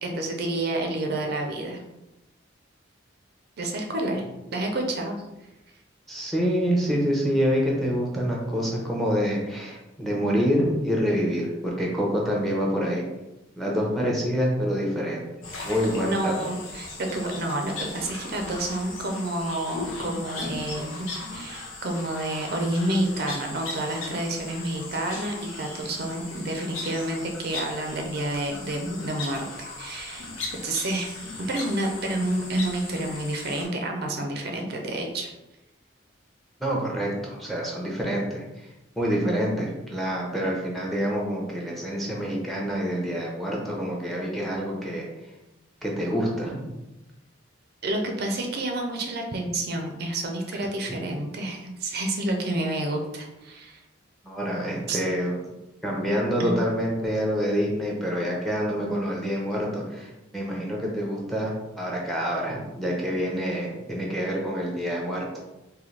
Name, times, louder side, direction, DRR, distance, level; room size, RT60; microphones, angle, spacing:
voice 1, 0.0-1.8 3.6-4.2 4.5-5.2 16.0-30.3 30.6-31.2 31.5-35.3 47.8-53.8 54.9-55.0 56.4-56.6, right 1 dB, 50° right, 2 dB, 0.5 m, -29 dB
voice 2, 6.1-13.0 13.6-15.3 15.6-16.4 36.6-45.0 45.8-46.7 54.2-55.3 55.8-65.3, equal, ahead, -2 dB, 0.7 m, -27 dB
sound 1, 15.4-33.6, left 3 dB, 85° left, 0.8 m, -38 dB
3.9 x 2.7 x 3.2 m, 0.97 s
head